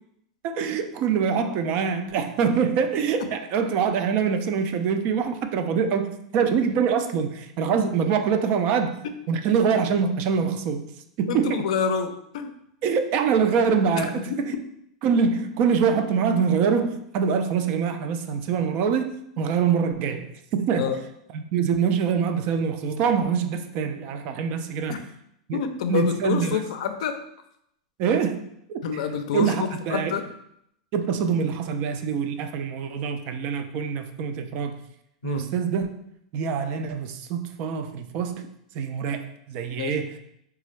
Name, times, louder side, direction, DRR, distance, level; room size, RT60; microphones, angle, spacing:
voice 1, 0.4-9.0 9.3-10.8 11.2-11.7 12.8-14.5 15.0-20.9 21.3-25.0 25.5-25.6 25.9-26.6 28.0-28.4 28.7-29.0 29.3-30.2 30.9-34.8 35.2-35.9 36.3-38.5 38.7-40.1, right 6 dB, 50° right, 7 dB, 0.4 m, -24 dB
voice 2, 11.3-12.5 14.0-14.1 20.8-21.0 24.9-25.0 25.5-27.2 28.8-30.3 35.2-35.5 39.8-40.0, left 7 dB, 70° left, 8 dB, 0.4 m, -27 dB
3.9 x 2.3 x 3.1 m, 0.76 s
hypercardioid pair, 115°, 4 cm